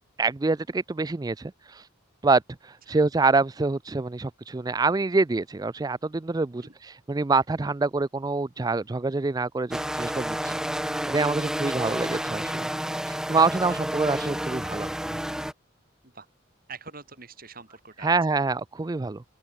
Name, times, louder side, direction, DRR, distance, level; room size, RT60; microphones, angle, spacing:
voice 1, 0.2-1.8 2.2-6.6 7.1-10.6 11.1-12.7 13.1-14.9 18.0-19.2, right 3 dB, 20° right, 0.4 m, -26 dB
sound 1, 9.7-15.5, equal, 5° right, 0.9 m, -30 dB
voice 2, 16.7-18.5, right 4 dB, 45° right, 6.3 m, -45 dB
head